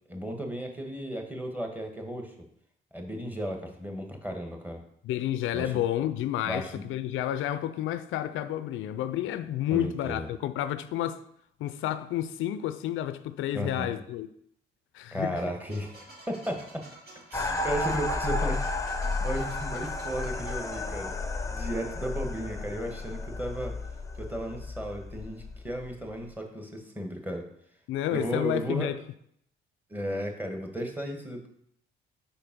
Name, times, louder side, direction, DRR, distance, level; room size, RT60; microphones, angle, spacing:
voice 1, 0.1-2.3 2.9-4.8 5.5-5.7 6.4-6.8 9.7-10.3 13.5-13.9 15.1-16.8 17.3-18.9 19.2-21.1 21.5-23.7 24.2-27.5 28.1-28.9 29.9-31.5, right 1 dB, 10° right, 1.4 m, -34 dB
voice 2, 5.0-11.2 11.6-14.3 14.9-15.4 27.9-29.0, left 12 dB, 85° left, 0.4 m, -30 dB
sound 1, 15.7-21.4, right 2 dB, 55° right, 2.2 m, -52 dB
sound 2, 17.3-26.3, left 3 dB, 15° left, 0.6 m, -33 dB
5.1 x 4.5 x 5.9 m
cardioid pair, 90°, 20 cm